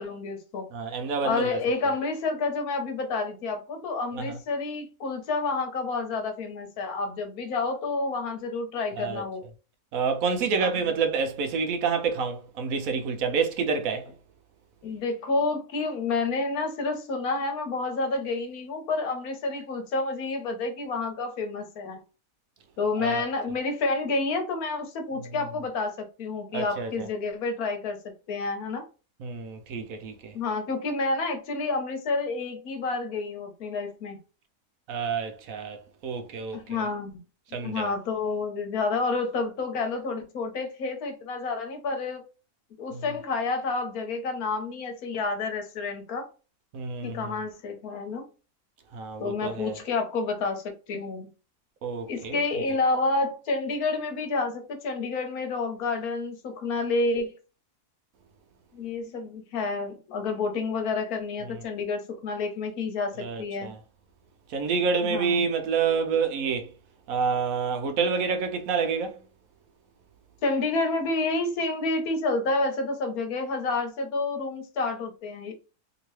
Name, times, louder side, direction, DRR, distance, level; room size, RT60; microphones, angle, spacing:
voice 1, 0.0-0.7 1.2-9.4 10.6-10.7 14.8-22.0 22.8-28.8 30.3-34.2 36.5-37.2 37.6-42.2 42.8-46.3 47.0-48.2 49.2-51.3 52.1-57.3 58.7-63.7 65.0-65.5 70.4-75.5, left 3 dB, 80° left, 1.3 m, -29 dB
voice 2, 0.7-1.6 4.1-4.4 9.0-9.2 9.9-14.1 23.0-23.2 26.5-27.1 29.2-30.3 34.9-36.8 37.5-37.9 42.9-43.0 46.7-47.3 48.9-49.8 51.8-52.6 61.5-61.6 63.2-63.8 64.5-66.7 67.1-69.2, right 5 dB, 75° right, 1.1 m, -28 dB
3.0 x 2.9 x 3.1 m
omnidirectional pair, 1.5 m